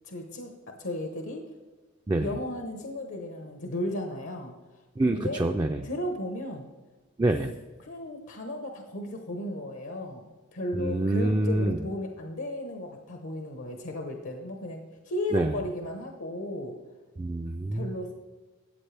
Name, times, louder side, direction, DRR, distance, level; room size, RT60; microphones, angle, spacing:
voice 1, 0.0-0.5 0.8-1.4 2.2-4.5 5.1-5.5 5.8-6.6 7.8-16.8 17.7-18.1, left 1 dB, 75° left, 3 dB, 1.0 m, -35 dB
voice 2, 5.0-5.8 7.2-7.5 10.7-11.8 15.3-15.5 17.2-17.9, right 2 dB, 20° right, 4 dB, 0.3 m, -26 dB
13.0 x 8.4 x 3.4 m, 1.3 s
head